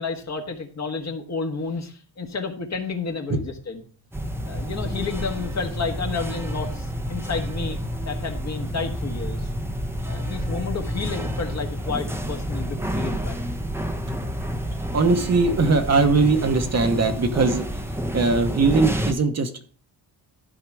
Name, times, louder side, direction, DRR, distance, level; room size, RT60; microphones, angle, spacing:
voice 1, 0.0-3.8 4.4-7.8 8.1-9.5 10.1-13.4, left 4 dB, 40° left, 4 dB, 1.5 m, -31 dB
sound 1, 4.1-19.1, equal, 5° right, 0.9 m, -29 dB
voice 2, 14.9-17.6 18.1-19.5, right 4 dB, 35° right, 6 dB, 1.1 m, -20 dB
12.5 x 4.9 x 4.8 m, 0.43 s
cardioid pair, 125°, 43 cm